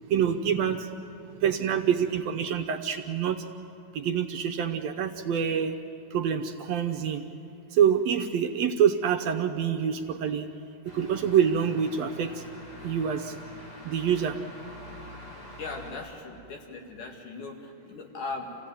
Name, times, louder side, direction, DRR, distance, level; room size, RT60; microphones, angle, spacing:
voice 1, 0.1-0.8 1.4-3.4 4.0-5.7 6.1-7.2 7.8-10.5 11.0-12.3 12.8-13.2 13.9-14.3, right 8 dB, 70° right, 5 dB, 1.9 m, -26 dB
sound 1, 10.8-15.9, equal, 55° left, 6.8 m, -45 dB
voice 2, 15.6-18.6, left 3 dB, 85° left, 1 dB, 3.7 m, -38 dB
28.0 x 16.0 x 9.1 m, 2.7 s
omnidirectional pair, 3.5 m